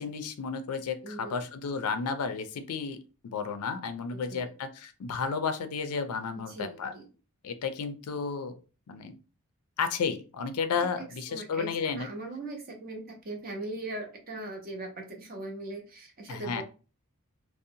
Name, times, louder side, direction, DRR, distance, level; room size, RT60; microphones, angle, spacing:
voice 1, 0.0-3.0 3.2-6.9 7.4-8.5 8.9-9.1 9.8-12.1 16.3-16.6, left 5 dB, 75° left, 9 dB, 0.4 m, -32 dB
voice 2, 1.0-1.4 4.1-4.5 6.3-7.0 11.0-16.6, right 2 dB, 40° right, 2 dB, 0.7 m, -40 dB
2.6 x 2.0 x 2.6 m, 0.34 s
head